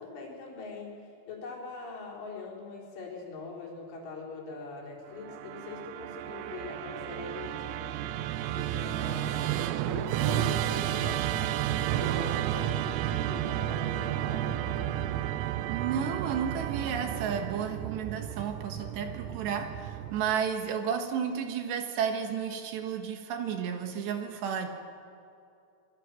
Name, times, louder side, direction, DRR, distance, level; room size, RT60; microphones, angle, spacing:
voice 1, 0.0-8.0 8.5-15.2, left 4 dB, 70° left, -2 dB, 6.6 m, -42 dB
Musical instrument, 5.2-20.5, right 12 dB, 90° right, 3.5 m, -32 dB
voice 2, 15.7-24.7, right 7 dB, 65° right, 6 dB, 3.4 m, -32 dB
25.0 x 22.0 x 7.7 m, 2.6 s
omnidirectional pair, 5.8 m